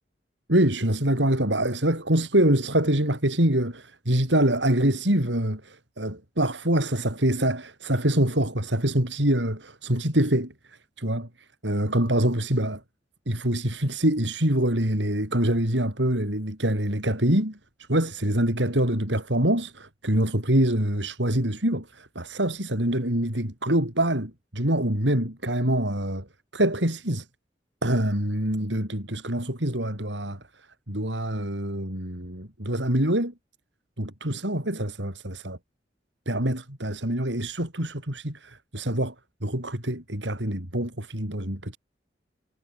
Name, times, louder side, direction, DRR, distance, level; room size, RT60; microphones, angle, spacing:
voice 1, 0.5-12.8 13.3-26.3 26.5-27.3 27.8-33.3 34.0-35.6 36.3-39.1 39.4-41.8, right 1 dB, 85° right, 7.4 m, -25 dB
head